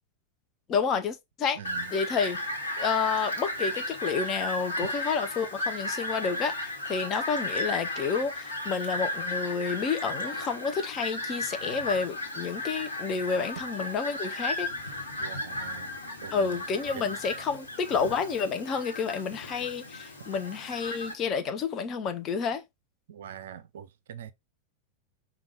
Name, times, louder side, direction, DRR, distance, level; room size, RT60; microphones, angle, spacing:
voice 1, 0.7-1.6 1.9-2.4 2.8-6.6 6.9-14.7 16.3-22.6, left 5 dB, 30° left, 0.6 m, -30 dB
Fowl, 1.6-21.1, left 1 dB, 70° left, 1.2 m, -35 dB
voice 2, 1.6-1.9 15.2-15.9 16.2-16.6 16.9-17.1 23.1-24.3, right 9 dB, 60° right, 0.4 m, -43 dB
5.2 x 2.3 x 3.3 m
figure-of-eight pair, 90°, 0 cm